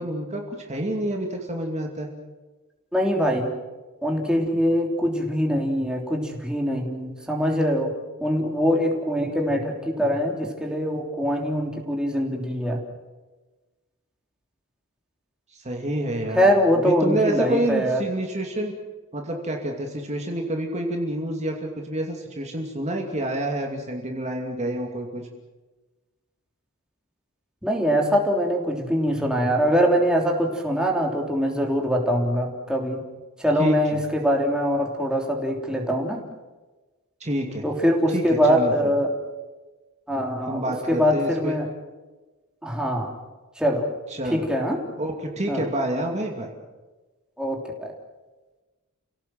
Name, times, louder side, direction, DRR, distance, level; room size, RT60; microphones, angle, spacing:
voice 1, 0.0-2.1 15.5-16.5 16.8-18.7 19.1-25.3 33.6-33.8 37.2-37.6 38.1-38.9 40.4-41.6 44.1-44.4 45.0-46.5, right 1 dB, 30° right, 1 dB, 2.6 m, -28 dB
voice 2, 2.9-3.5 4.0-7.9 8.2-12.8 16.3-18.0 27.6-33.0 33.4-36.2 37.6-39.1 40.1-41.7 42.6-43.1 43.6-43.9 44.3-44.8 45.5-45.6 47.4-47.9, equal, 5° right, 0 dB, 3.3 m, -23 dB
30.0 x 17.5 x 7.8 m, 1.2 s
head